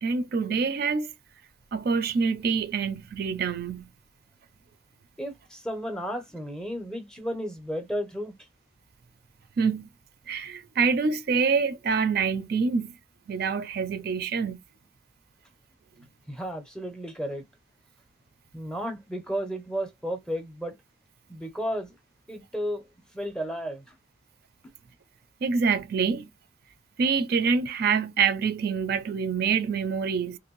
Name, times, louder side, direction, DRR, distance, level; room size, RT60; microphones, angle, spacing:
voice 1, 0.0-1.1 1.7-3.9 9.6-9.9 10.3-12.9 13.3-14.6 25.4-26.3 27.0-30.4, right 5 dB, 55° right, 0.4 m, -26 dB
voice 2, 5.2-8.3 16.3-17.4 18.5-20.8 21.3-22.0 22.3-22.8 23.1-23.9, equal, 5° left, 0.6 m, -33 dB
3.0 x 2.5 x 3.0 m
head